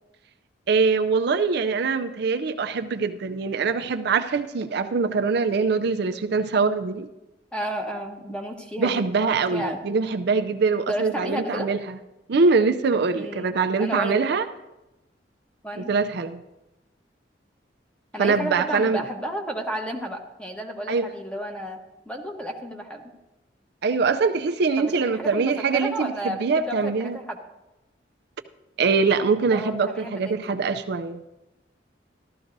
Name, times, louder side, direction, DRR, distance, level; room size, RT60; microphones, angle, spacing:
voice 1, 0.7-7.1 8.8-12.0 12.3-14.4 15.8-16.4 18.2-19.0 20.9-21.1 23.8-27.2 28.8-31.2, right 4 dB, 65° right, 8 dB, 0.5 m, -23 dB
voice 2, 7.5-9.8 10.9-11.7 13.1-14.3 15.6-15.9 18.1-21.8 22.1-23.0 24.8-27.4 29.5-30.6, right 1 dB, 5° left, 2 dB, 1.1 m, -32 dB
14.0 x 12.5 x 2.6 m, 1.0 s
head